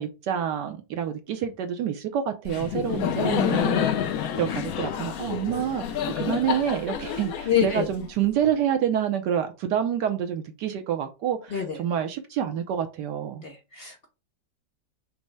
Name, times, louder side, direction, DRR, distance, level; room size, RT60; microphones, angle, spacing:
voice 1, 0.0-13.4, right 9 dB, 75° right, 1.2 m, -28 dB
Laughter, 2.5-8.3, left 9 dB, 65° left, 0.9 m, -28 dB
voice 2, 7.5-7.9 11.5-11.8 13.4-14.1, left 8 dB, 85° left, 0.5 m, -26 dB
5.3 x 2.1 x 4.5 m
omnidirectional pair, 2.0 m